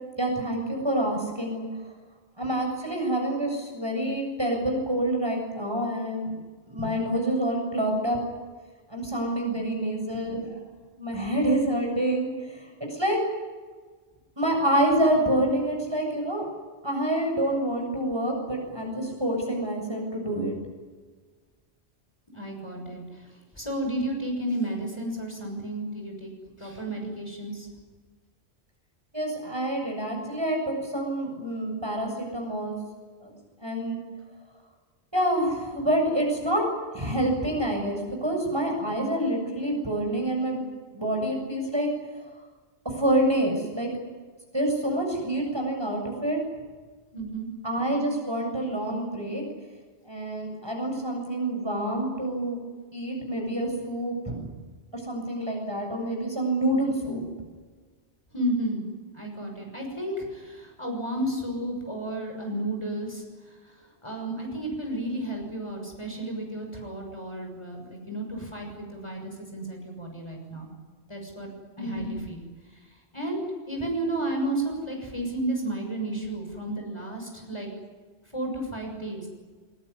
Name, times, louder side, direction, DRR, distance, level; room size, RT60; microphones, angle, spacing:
voice 1, 0.2-1.7 2.4-6.3 6.7-8.2 8.9-10.6 11.0-13.2 14.4-16.5 16.8-20.6 29.1-32.8 33.2-33.3 33.6-34.0 35.1-36.6 36.9-40.6 40.9-41.9 42.8-43.9 44.5-46.4 47.6-49.4 50.1-52.6 52.9-54.5 54.9-57.2 71.8-72.1, right 1 dB, 25° right, 1 dB, 7.6 m, -27 dB
voice 2, 9.4-9.8 22.3-23.0 23.5-26.3 26.6-27.7 47.1-47.5 58.3-58.8 59.1-63.2 64.0-70.7 71.1-71.5 71.8-72.4 73.1-77.7 78.3-79.3, right 1 dB, 25° left, 1 dB, 6.5 m, -32 dB
24.0 x 22.5 x 9.9 m, 1.4 s
omnidirectional pair, 1.1 m